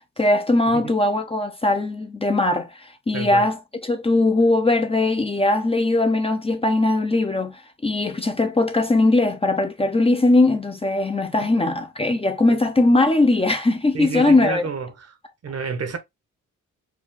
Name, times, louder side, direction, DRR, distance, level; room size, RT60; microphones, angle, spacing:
voice 1, 0.2-2.7 3.1-14.7, left 2 dB, 20° left, 0.7 m, -20 dB
voice 2, 3.1-3.4 11.4-11.5 13.9-15.2 15.4-16.0, right 5 dB, 50° right, 1.1 m, -29 dB
4.8 x 2.4 x 3.6 m
cardioid pair, 90°, 32 cm